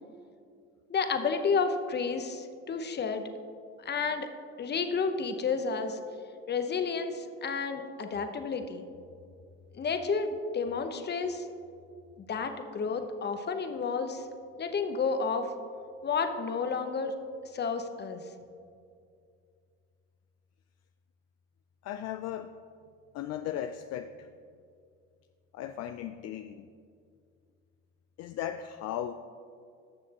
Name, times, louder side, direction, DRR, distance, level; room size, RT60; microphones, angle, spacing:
voice 1, 0.9-3.2 3.8-4.3 4.6-6.0 6.5-8.8 9.7-11.5 12.3-14.2 14.6-15.5 16.0-17.1 17.5-18.2, left 5 dB, 35° left, 7 dB, 0.9 m, -31 dB
voice 2, 21.8-22.5 23.1-24.3 25.5-26.7 28.2-29.1, left 10 dB, 60° left, 8 dB, 0.4 m, -36 dB
14.0 x 6.3 x 2.9 m, 2.3 s
supercardioid pair, 75°, 30 cm